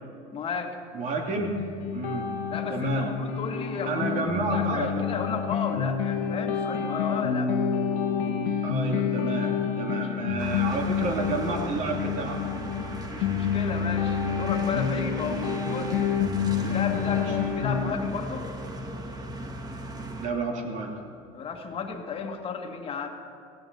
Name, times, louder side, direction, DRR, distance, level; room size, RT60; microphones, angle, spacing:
voice 1, 0.3-0.8 2.5-7.5 9.9-10.3 13.1-16.0 16.6-18.5 21.3-23.1, left 5 dB, 35° left, 3 dB, 1.8 m, -33 dB
voice 2, 0.9-1.6 1.9-2.3 2.7-3.1 3.9-5.0 8.6-12.4 17.1-17.2 20.2-20.9, right 3 dB, 45° right, 1 dB, 2.7 m, -30 dB
sound 1, 1.4-17.9, left 7 dB, 85° left, 1.5 m, -28 dB
sound 2, 10.4-20.3, right 2 dB, 25° right, 1.5 m, -37 dB
16.5 x 16.5 x 5.4 m, 2.6 s
cardioid pair, 125°, 17 cm